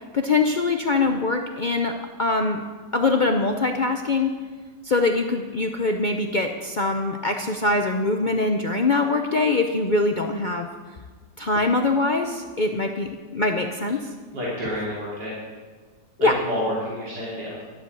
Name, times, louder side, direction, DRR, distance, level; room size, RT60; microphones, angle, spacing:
voice 1, 0.1-2.6 2.9-4.3 4.8-10.7 11.4-14.1 16.2-16.3, left 3 dB, 60° left, 4 dB, 0.5 m, -23 dB
voice 2, 14.3-15.4 16.2-17.5, left 1 dB, 75° right, -7 dB, 3.5 m, -29 dB
12.0 x 7.9 x 8.2 m, 1.4 s
omnidirectional pair, 1.9 m